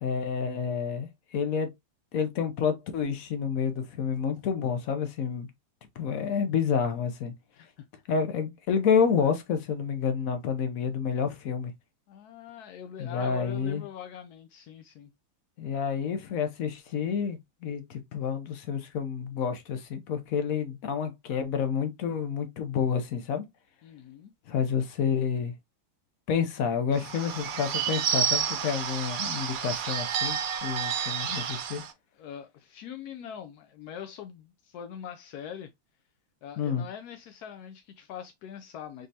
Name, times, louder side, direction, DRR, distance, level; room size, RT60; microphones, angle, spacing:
voice 1, 0.0-1.7 2.1-5.5 6.0-7.3 8.1-11.7 13.0-13.8 15.6-23.4 24.5-25.5 26.3-31.8 36.6-36.8, left 6 dB, 55° left, 1.1 m, -29 dB
voice 2, 7.6-7.9 12.1-15.1 23.8-24.3 32.1-35.7 36.4-39.1, left 9 dB, 75° left, 0.9 m, -43 dB
Bird / Bell, 26.9-31.9, right 8 dB, 60° right, 0.9 m, -30 dB
3.8 x 3.8 x 2.7 m
omnidirectional pair, 2.1 m